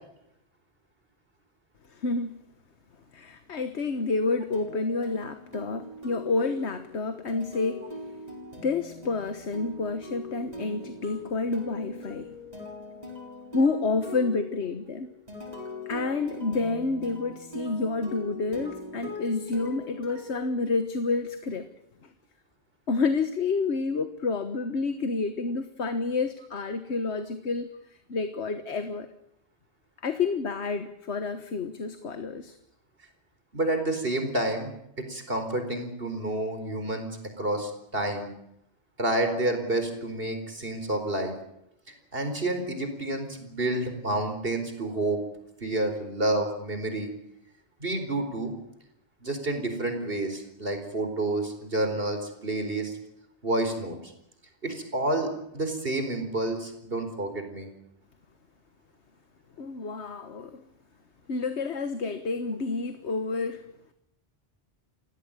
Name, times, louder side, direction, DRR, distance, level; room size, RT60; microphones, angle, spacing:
voice 1, 1.9-2.4 3.1-7.9 8.6-12.3 13.5-15.1 15.9-21.7 22.0-22.1 22.9-29.1 30.0-32.6 59.6-60.6 61.3-63.9, left 3 dB, 85° left, 10 dB, 1.6 m, -29 dB
sound 1, 4.5-21.2, left 2 dB, 35° right, 6.8 m, -41 dB
voice 2, 33.5-34.7 35.0-37.1 37.4-38.3 39.0-41.3 42.1-45.2 45.6-47.1 47.8-48.5 49.2-53.0 53.4-54.0 54.6-57.7, right 1 dB, 60° right, 7 dB, 4.7 m, -29 dB
29.5 x 16.5 x 9.0 m, 0.80 s
omnidirectional pair, 1.1 m